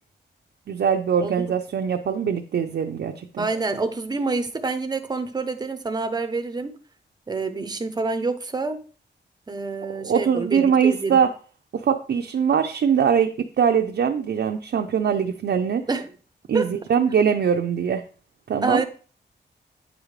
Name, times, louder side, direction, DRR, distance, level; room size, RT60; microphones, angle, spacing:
voice 1, 0.7-3.5 9.9-11.3 11.7-15.8 16.5-18.0 18.5-18.8, right 7 dB, 65° right, 0.5 m, -22 dB
voice 2, 3.4-6.8 7.3-8.8 9.5-11.2 15.9-16.1 16.5-16.7 18.6-18.8, right 3 dB, 20° right, 0.6 m, -27 dB
9.0 x 5.0 x 3.2 m
wide cardioid pair, 170°, 19 cm